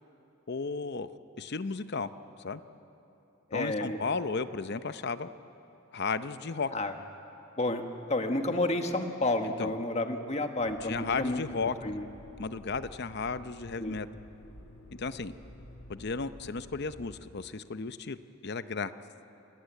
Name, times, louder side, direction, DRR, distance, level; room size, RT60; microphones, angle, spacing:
voice 1, 0.5-1.1 1.4-2.1 2.4-2.6 3.5-5.3 5.9-6.7 9.6-9.7 10.8-11.8 12.4-14.1 15.0-15.3 15.9-18.2 18.4-18.9, left 4 dB, 55° left, 12 dB, 0.7 m, -34 dB
voice 2, 3.5-4.0 6.7-6.9 7.6-7.8 8.1-11.4 11.8-12.1 13.8-13.9, left 2 dB, 35° left, 5 dB, 1.5 m, -30 dB
Motor vehicle (road), 10.6-17.2, equal, 80° left, 4.0 m, -51 dB
27.0 x 18.0 x 8.2 m, 2.9 s
head